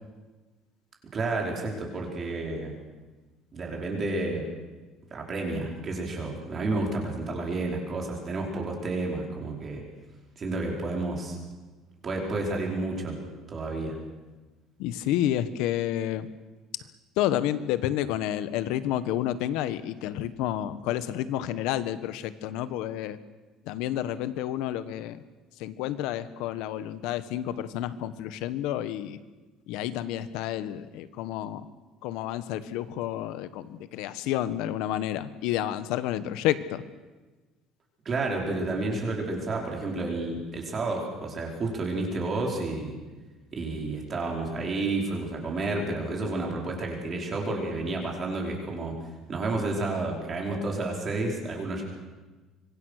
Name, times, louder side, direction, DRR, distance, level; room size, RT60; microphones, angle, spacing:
voice 1, 1.1-2.7 3.5-4.5 5.1-9.8 10.4-11.4 12.0-13.2 13.5-13.9 38.0-42.9 43.5-48.9 49.3-51.8, right 2 dB, 25° right, 0 dB, 4.9 m, -30 dB
voice 2, 14.8-16.3 17.2-23.2 23.6-25.2 25.6-29.2 29.7-31.7 32.0-36.8, left 12 dB, 75° left, 13 dB, 1.3 m, -30 dB
25.5 x 23.0 x 6.6 m, 1.2 s
cardioid pair, 180°, 0 cm